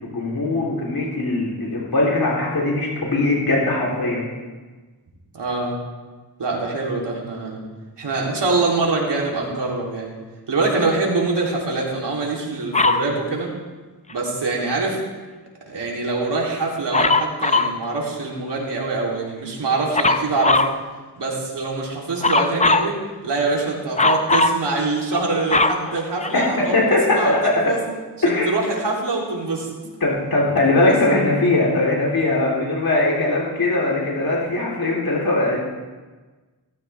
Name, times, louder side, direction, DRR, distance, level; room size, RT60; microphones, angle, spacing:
voice 1, 0.0-4.3 26.3-26.5 26.7-27.5 28.2-28.5 30.0-35.6, left 2 dB, 60° left, -4 dB, 3.8 m, -20 dB
voice 2, 5.3-5.7 6.4-7.6 8.0-10.1 10.5-13.5 14.1-15.0 15.7-20.6 21.1-27.9 28.2-29.7, right 3 dB, 80° right, -3 dB, 3.5 m, -24 dB
Dog, 12.7-13.1 16.9-17.8 19.9-20.8 22.2-22.9 24.0-24.6 25.1-26.7 27.4-27.5, left 3 dB, 15° left, 0.6 m, -19 dB
16.5 x 14.5 x 3.6 m, 1.3 s
wide cardioid pair, 85°, 41 cm